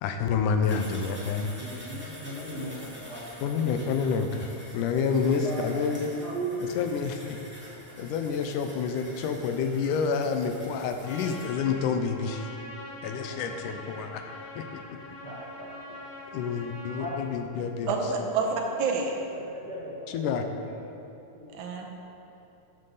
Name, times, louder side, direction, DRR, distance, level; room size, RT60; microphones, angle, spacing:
voice 1, 0.0-1.5 3.4-4.5 4.7-6.1 6.8-7.4 8.0-12.5 13.0-14.2 14.6-15.0 16.3-17.9 20.1-20.5, left 6 dB, 80° left, 6 dB, 2.2 m, -28 dB
sound 1, 0.6-11.5, equal, 5° right, 1.9 m, -47 dB
voice 2, 1.6-4.0 5.1-5.8 6.1-6.8 13.2-13.5 15.2-16.0 17.0-17.1 17.8-18.5 18.8-18.9 19.3-20.3 20.6-20.8 21.3-21.6, right 1 dB, 40° right, -5 dB, 1.6 m, -38 dB
Trumpet, 11.0-17.2, left 2 dB, 50° left, 1.1 m, -43 dB
voice 3, 18.8-19.1 21.5-21.9, right 7 dB, 75° right, 1 dB, 2.3 m, -27 dB
14.0 x 7.5 x 4.0 m, 3.0 s
omnidirectional pair, 3.7 m